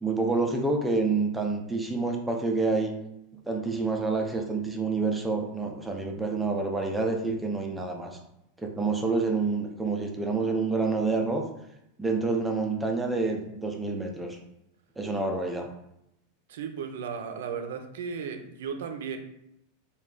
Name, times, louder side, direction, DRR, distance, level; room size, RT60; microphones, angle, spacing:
voice 1, 0.0-3.0 3.5-8.2 8.6-11.4 12.0-14.4 15.0-15.7, right 3 dB, 5° right, 2 dB, 0.4 m, -28 dB
voice 2, 16.5-19.2, right 6 dB, 80° right, 6 dB, 0.5 m, -35 dB
3.2 x 2.3 x 3.7 m, 0.81 s
supercardioid pair, 145°, 0 cm